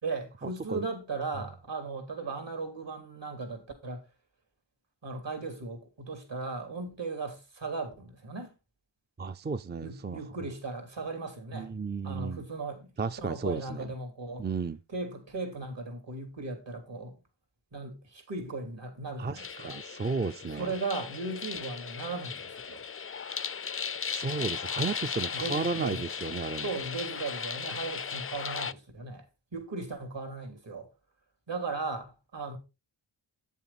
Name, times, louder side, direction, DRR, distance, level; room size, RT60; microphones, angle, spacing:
voice 1, 0.0-4.0 5.0-8.5 9.8-11.7 12.0-12.9 13.2-14.5 14.9-17.2 17.7-19.8 20.5-22.8 25.3-26.0 26.6-29.2 29.5-30.9 31.5-32.0 32.3-32.6, right 3 dB, 75° right, 3.3 m, -37 dB
voice 2, 9.2-10.2 11.5-12.4 13.0-13.9 14.4-14.8 19.2-20.7 24.1-26.7, right 4 dB, 25° right, 0.4 m, -33 dB
sound 1, 19.4-28.7, left 6 dB, 30° left, 0.4 m, -37 dB
9.0 x 7.2 x 4.1 m
wide cardioid pair, 70°, 44 cm